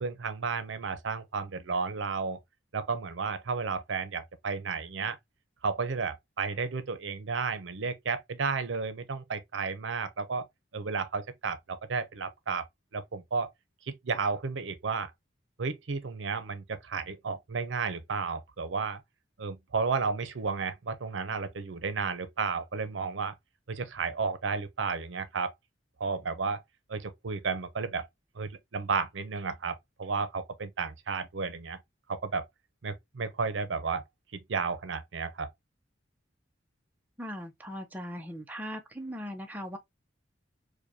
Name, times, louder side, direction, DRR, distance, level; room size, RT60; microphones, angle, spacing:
voice 1, 0.0-2.4 2.7-5.2 5.6-10.5 10.7-12.6 12.9-13.5 13.9-15.1 15.6-19.0 19.4-23.3 23.7-25.5 26.0-26.6 26.9-28.1 28.4-31.8 32.1-32.5 32.8-34.0 34.3-35.5, right 5 dB, 75° right, 0.6 m, -32 dB
voice 2, 37.2-39.8, equal, 10° right, 0.5 m, -39 dB
4.9 x 2.2 x 2.6 m
head